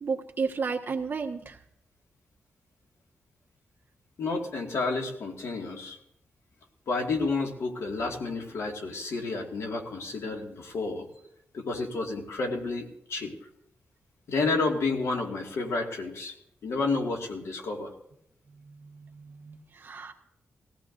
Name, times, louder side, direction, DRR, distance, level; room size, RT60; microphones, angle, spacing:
voice 1, 0.0-1.6 18.6-20.1, right 5 dB, 45° right, 2 dB, 1.4 m, -33 dB
voice 2, 4.2-6.0 6.9-11.1 11.5-13.3 14.3-16.3 16.6-17.9, left 3 dB, 75° left, 2 dB, 2.0 m, -30 dB
19.5 x 16.0 x 2.6 m, 0.75 s
wide cardioid pair, 145°, 5 cm